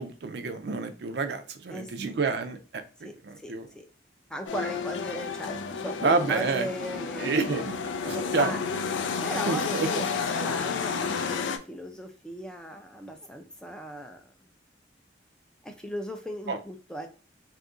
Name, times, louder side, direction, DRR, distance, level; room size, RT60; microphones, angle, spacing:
voice 1, 0.0-3.7 6.0-6.7 7.2-7.8 8.1-8.5 9.5-9.9 16.5-16.6, right 4 dB, 60° right, 8 dB, 0.4 m, -29 dB
voice 2, 1.7-2.2 3.0-3.9 4.3-7.5 8.0-8.6 9.2-10.1 10.3-14.2 15.6-17.1, equal, 5° left, 5 dB, 0.3 m, -38 dB
sound 1, 4.5-11.6, left 5 dB, 90° left, 0.4 m, -31 dB
2.7 x 2.4 x 3.7 m, 0.38 s
head